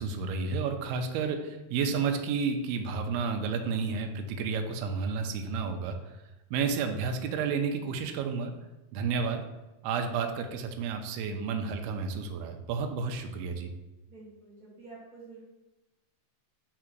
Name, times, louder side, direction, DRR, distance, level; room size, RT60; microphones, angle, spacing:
voice 1, 0.0-6.2 6.5-8.5 8.9-9.4 9.8-13.7, right 5 dB, 80° right, 5 dB, 2.5 m, -31 dB
voice 2, 14.1-15.4, right 3 dB, 40° right, -11 dB, 1.5 m, -49 dB
5.8 x 3.7 x 6.0 m, 1.0 s
omnidirectional pair, 4.6 m